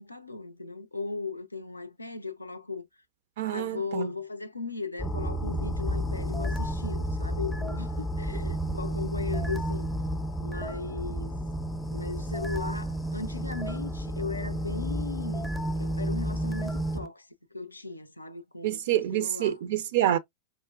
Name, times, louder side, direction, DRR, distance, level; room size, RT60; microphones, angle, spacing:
voice 1, 0.0-2.9 3.4-9.9 10.4-11.3 11.9-18.8 19.1-19.6, left 3 dB, 85° left, 0.4 m, -37 dB
voice 2, 3.4-4.1 18.6-20.2, right 12 dB, 55° right, 0.3 m, -27 dB
sound 1, 5.0-17.1, equal, 10° left, 0.5 m, -31 dB
4.8 x 2.0 x 2.3 m
figure-of-eight pair, 90°, 0 cm